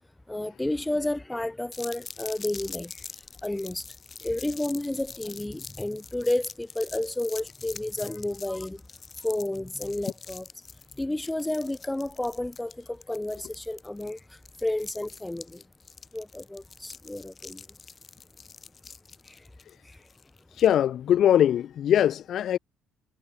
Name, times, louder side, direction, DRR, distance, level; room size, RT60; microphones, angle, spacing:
voice 1, 0.3-3.0 3.4-3.9 4.2-8.8 9.2-10.4 11.0-14.2 14.6-15.6 16.1-17.6 19.3-19.4 19.8-20.0, left 1 dB, 5° left, 1.0 m, -31 dB
sound 1, 1.7-20.7, left 5 dB, 25° left, 5.3 m, -45 dB
voice 2, 20.6-22.6, left 10 dB, 45° left, 2.5 m, -21 dB
cardioid pair, 165°, 0 cm